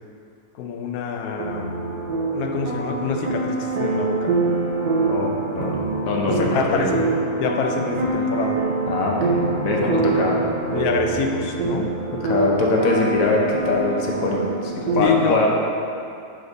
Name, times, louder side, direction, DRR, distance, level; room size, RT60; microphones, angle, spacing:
voice 1, 0.6-1.8 2.3-4.4 6.3-8.6 9.8-10.4 10.7-11.9 15.0-15.6, left 4 dB, 90° left, 3 dB, 1.1 m, -26 dB
sound 1, 1.4-15.0, right 3 dB, 60° right, 0.4 m, -25 dB
voice 2, 5.1-6.9 8.9-10.4 12.2-15.6, left 2 dB, 65° left, -2 dB, 1.1 m, -23 dB
5.1 x 4.9 x 3.9 m, 2.5 s
omnidirectional pair, 1.6 m